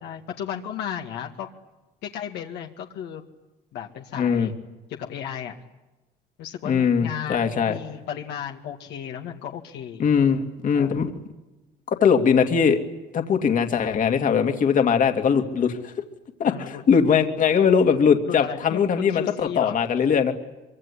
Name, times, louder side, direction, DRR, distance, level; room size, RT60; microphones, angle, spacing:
voice 1, 0.0-1.5 2.0-3.2 3.7-4.6 5.0-5.6 6.4-10.1 10.7-11.1 16.4-16.8 18.3-19.8, left 9 dB, 80° left, 2 dB, 2.2 m, -34 dB
voice 2, 4.1-4.5 6.6-7.8 10.0-11.1 11.9-12.8 13.1-15.9 16.4-20.3, left 6 dB, 50° left, 5 dB, 2.5 m, -21 dB
24.5 x 24.0 x 9.9 m, 1.1 s
cardioid pair, 110°, 17 cm